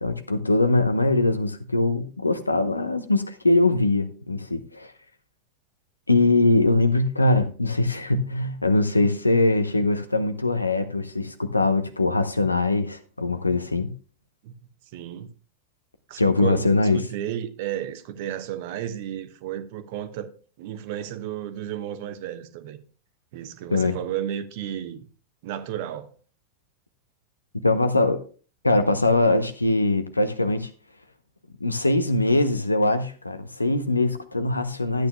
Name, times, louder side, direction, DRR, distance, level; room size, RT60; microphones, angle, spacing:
voice 1, 0.0-4.9 6.1-13.9 16.2-17.0 23.7-24.0 27.6-28.2 28.6-30.7 31.6-35.1, left 2 dB, 80° left, 0.8 m, -22 dB
voice 2, 14.9-15.3 16.1-20.3 20.6-22.8 23.3-25.0 25.4-26.1, right 11 dB, 50° right, 1.0 m, -33 dB
13.5 x 9.1 x 2.3 m
figure-of-eight pair, 90°, 0 cm